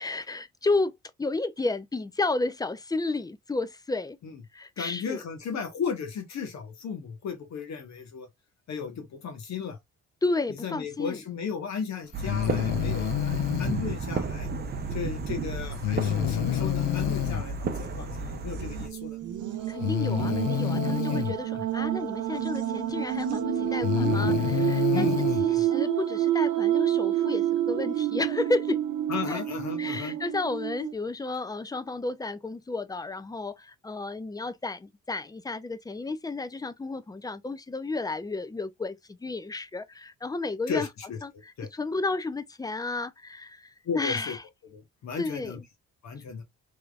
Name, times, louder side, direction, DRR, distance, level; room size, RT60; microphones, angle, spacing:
voice 1, 0.0-4.2 4.5-5.2 10.2-11.2 19.7-25.1 25.4-28.8 29.3-29.4 29.8-40.9 41.2-44.4 45.2-45.7, left 3 dB, 15° left, 0.4 m, -32 dB
voice 2, 4.8-8.3 8.7-9.8 10.6-14.5 14.9-19.2 21.1-21.3 24.9-25.6 29.1-30.1 40.7-41.2 41.6-41.7 43.8-44.4 44.7-45.6 46.0-46.4, left 6 dB, 65° left, 1.3 m, -35 dB
sound 1, 12.1-18.9, right 3 dB, 35° right, 0.6 m, -32 dB
Breathing, 12.2-13.8 15.8-17.4 18.8-18.9 19.8-21.4 22.9-23.0 23.7-25.5, left 12 dB, 90° left, 0.5 m, -28 dB
sound 2, 16.4-17.0 17.4-17.5 18.5-30.9, right 11 dB, 75° right, 0.8 m, -28 dB
3.4 x 3.0 x 2.4 m
cardioid pair, 90°, 30 cm